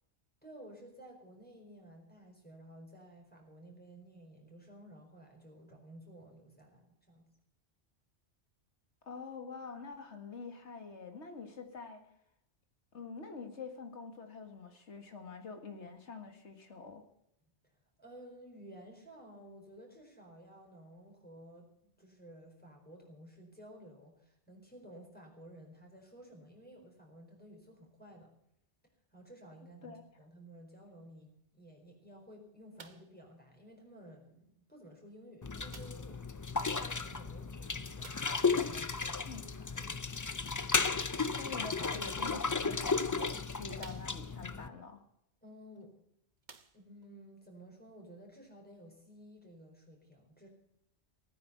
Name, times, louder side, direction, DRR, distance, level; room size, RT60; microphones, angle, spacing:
voice 1, 0.4-7.3 18.0-28.3 29.1-38.1 38.5-40.0 45.4-45.9 46.7-50.5, right 1 dB, 10° left, 0 dB, 4.4 m, -54 dB
voice 2, 9.0-12.0 12.9-17.0 29.8-30.0 39.3-39.5 41.2-45.0, left 4 dB, 80° left, 6 dB, 2.2 m, -46 dB
sound 1, 32.8-33.2 34.1-34.2 35.7-36.1 38.0-38.4 41.0-41.4 42.4-42.5 43.1-43.2 43.8-44.5 45.8-45.9 46.4-47.1 47.9-48.0, right 5 dB, 45° right, 1.1 m, -54 dB
sound 2, 35.4-44.7, left 4 dB, 30° left, 0.4 m, -34 dB
17.5 x 9.6 x 6.9 m, 0.78 s
omnidirectional pair, 1.2 m